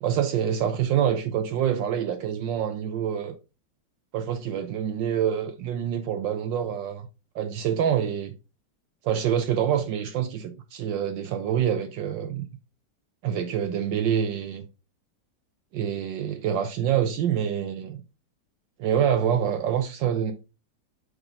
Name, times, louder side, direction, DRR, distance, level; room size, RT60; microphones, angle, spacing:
voice 1, 0.0-3.3 4.1-7.1 7.3-8.3 9.0-12.5 13.2-14.6 15.7-18.0 18.8-20.3, right 9 dB, 75° right, 1.3 m, -26 dB
8.0 x 3.8 x 3.7 m
omnidirectional pair, 2.1 m